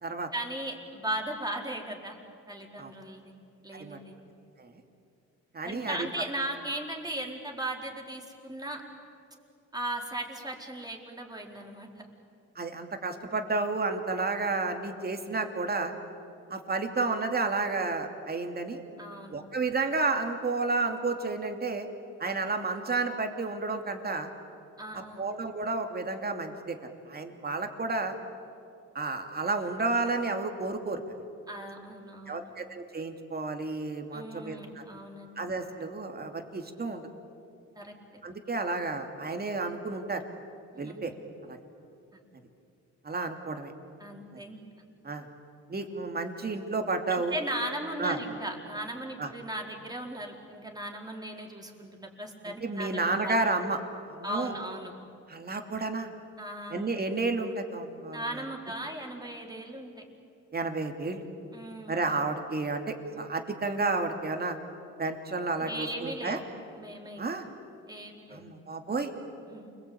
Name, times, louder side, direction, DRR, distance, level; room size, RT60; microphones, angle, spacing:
voice 1, 0.3-2.2 2.5-3.3 3.6-4.1 5.6-8.8 9.7-12.1 19.0-19.4 24.8-25.3 31.5-32.5 34.1-35.4 37.7-37.9 40.7-41.0 42.1-42.2 44.0-44.6 47.1-53.3 54.2-54.9 56.4-56.9 58.1-60.0 61.5-62.1 65.6-66.4 66.8-67.3 67.9-68.4 69.5-69.7, right 1 dB, 15° right, 0 dB, 4.4 m, -37 dB
voice 2, 5.5-6.1 12.6-15.9 16.5-18.8 19.3-21.9 22.2-24.3 25.2-26.8 27.1-28.1 28.9-31.0 32.3-34.8 35.4-37.1 38.2-40.2 40.8-41.1 41.4-41.6 43.0-43.7 45.0-45.2 45.7-47.4 48.0-48.2 49.2-49.3 52.6-53.8 54.1-54.5 55.3-56.1 56.7-58.2 60.5-61.3 61.9-64.6 65.0-66.4 67.2-67.5 68.3-69.1, right 3 dB, 30° right, 4 dB, 2.8 m, -31 dB
29.0 x 22.0 x 8.7 m, 2.6 s
cardioid pair, 90°, 30 cm